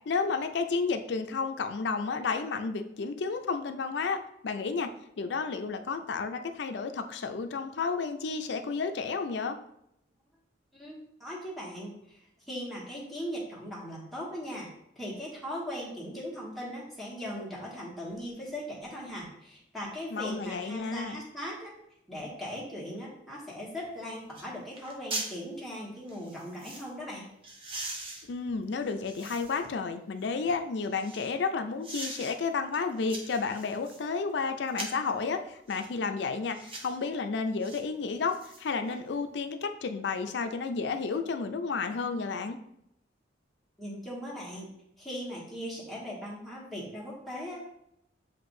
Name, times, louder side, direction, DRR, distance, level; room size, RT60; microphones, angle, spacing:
voice 1, 0.1-4.9 5.2-9.6 20.1-21.2 28.3-42.6, left 4 dB, 65° left, 8 dB, 0.4 m, -31 dB
voice 2, 10.7-12.2 12.5-14.7 14.9-21.7 22.1-27.3 43.8-44.7 45.0-47.7, equal, ahead, -7 dB, 1.3 m, -39 dB
sound 1, 23.8-23.9 24.3-24.5 24.8-25.3 26.1-26.9 27.4-29.7 30.2-31.3 31.8-32.3 32.7-34.1 34.7-35.1 35.7-35.9 36.5-37.0 37.6-37.8 38.2-39.0 39.3-39.4, right 2 dB, 30° right, 0.6 m, -41 dB
7.5 x 2.6 x 2.6 m, 0.77 s
head